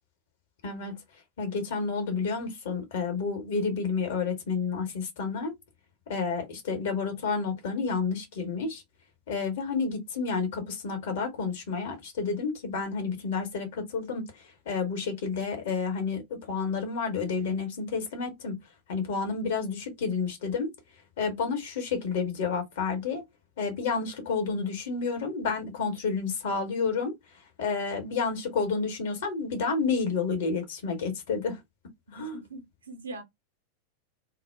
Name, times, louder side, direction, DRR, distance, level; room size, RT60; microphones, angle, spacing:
voice 1, 0.6-0.9 1.4-5.5 6.1-8.8 9.3-14.2 14.7-18.5 18.9-20.7 21.2-23.2 23.6-27.1 27.6-31.6 32.1-32.4, left 5 dB, 55° left, 0.9 m, -30 dB
voice 2, 32.1-33.2, right 2 dB, 75° right, 0.6 m, -42 dB
2.1 x 2.0 x 3.2 m
figure-of-eight pair, 90°, 0 cm